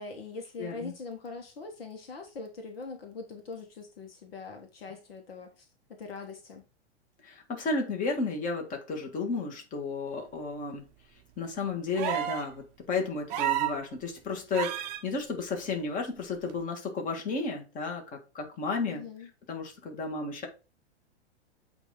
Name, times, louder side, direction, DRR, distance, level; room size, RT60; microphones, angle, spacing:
voice 1, 0.0-6.6 18.9-19.3, left 3 dB, 60° left, 1.3 m, -42 dB
voice 2, 0.6-0.9 7.2-10.8 11.4-19.0 19.5-20.5, left 4 dB, 25° left, 1.6 m, -33 dB
sound 1, 12.0-12.5 13.3-13.8 14.5-15.0 16.5-16.6, right 13 dB, 35° right, 0.7 m, -30 dB
8.1 x 2.8 x 4.9 m
figure-of-eight pair, 100°, 34 cm